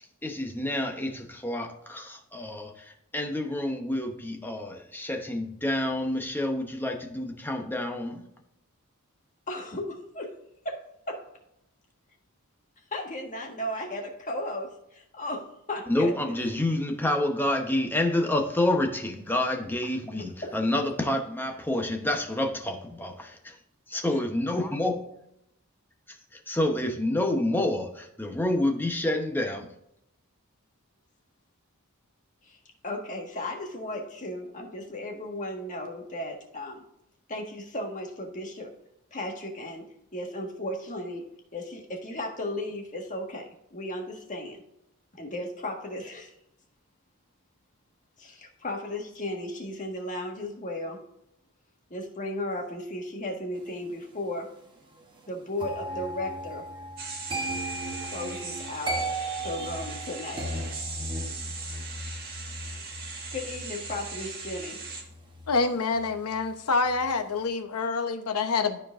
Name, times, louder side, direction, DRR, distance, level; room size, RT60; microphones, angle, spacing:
voice 1, 0.2-8.2 15.9-23.6 23.9-25.0 26.1-29.7, left 1 dB, 10° left, 0.9 m, -28 dB
voice 2, 9.5-10.3 10.7-10.8 11.1-11.2 12.9-16.3 20.4-20.5 32.4-32.6 32.8-36.8 37.3-38.7 39.1-39.8 40.1-41.3 41.5-44.6 45.2-46.3 48.2-51.0 51.9-54.5 55.3-56.7 58.0-59.0 59.4-60.5 63.3-64.8, left 1 dB, 35° left, 1.6 m, -35 dB
sound 1, 55.6-66.6 66.8-67.2, right 1 dB, 20° right, 1.1 m, -37 dB
sound 2, 57.0-65.0, right 4 dB, 45° right, 1.9 m, -39 dB
voice 3, 65.5-68.8, left 4 dB, 90° left, 0.8 m, -27 dB
13.0 x 4.5 x 2.5 m
head